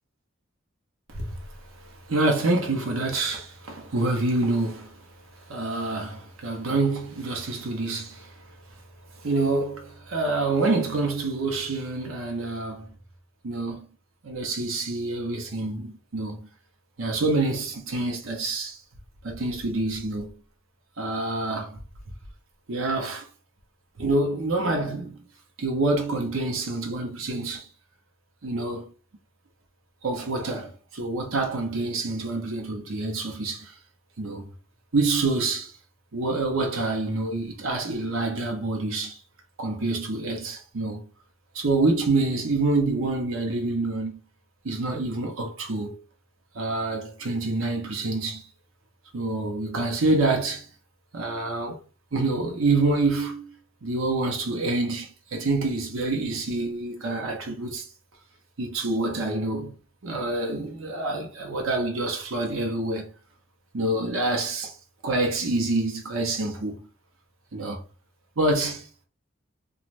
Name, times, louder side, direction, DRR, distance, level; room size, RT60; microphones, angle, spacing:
voice 1, 2.1-5.0 5.5-8.3 9.2-12.9 13.4-13.9 14.2-16.5 17.0-18.8 19.2-20.4 21.0-21.8 22.7-23.3 24.0-25.2 25.6-27.7 28.4-28.8 30.0-33.7 34.2-34.5 34.9-35.7 36.1-39.2 39.6-41.1 41.5-44.2 44.6-46.0 46.5-48.4 49.1-50.7 51.1-51.8 52.1-53.5 53.8-57.9 58.6-59.7 60.0-63.1 63.7-64.7 65.0-66.8 67.5-67.8 68.4-68.9, right 2 dB, 85° right, 0.8 m, -27 dB
2.6 x 2.3 x 3.1 m
head